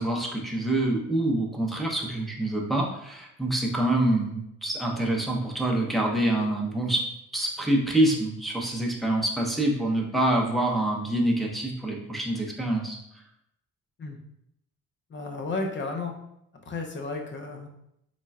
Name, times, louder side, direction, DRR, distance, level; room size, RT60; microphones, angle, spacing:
voice 1, 0.0-7.0 7.3-13.0, right 1 dB, ahead, -2 dB, 0.7 m, -26 dB
voice 2, 15.1-16.1 16.7-17.7, left 3 dB, 40° left, 2 dB, 0.7 m, -33 dB
3.7 x 3.3 x 2.4 m, 0.78 s
cardioid pair, 90°, 30 cm